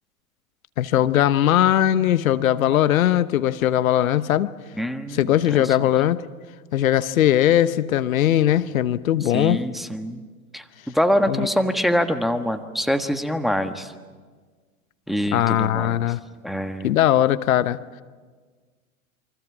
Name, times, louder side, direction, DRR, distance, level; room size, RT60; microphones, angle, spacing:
voice 1, 0.8-4.5 5.1-6.2 6.7-9.6 11.3-11.5 15.3-16.2 16.8-17.8, left 12 dB, 75° left, 15 dB, 0.9 m, -19 dB
voice 2, 4.7-5.9 9.2-10.2 10.5-13.9 15.1-16.0 16.4-16.9, equal, ahead, 7 dB, 1.3 m, -25 dB
28.5 x 24.5 x 6.1 m, 1.5 s
hypercardioid pair, 100°, 42 cm